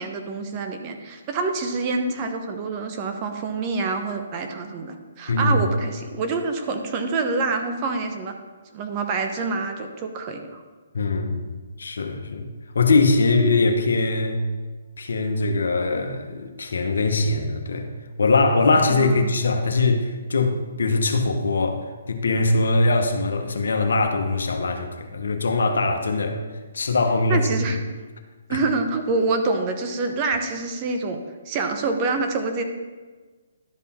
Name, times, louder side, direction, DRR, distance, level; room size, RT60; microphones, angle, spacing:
voice 1, 0.0-8.3 8.7-10.6 18.9-19.3 27.3-27.8 28.5-31.2 31.5-32.6, right 3 dB, 30° right, 5 dB, 0.9 m, -26 dB
voice 2, 10.9-11.4 11.8-12.5 12.7-14.4 15.0-17.9 18.2-26.4 26.7-27.7 28.5-28.6, left 3 dB, 70° left, 5 dB, 1.0 m, -22 dB
11.5 x 5.5 x 4.2 m, 1.4 s
figure-of-eight pair, 135°, 0 cm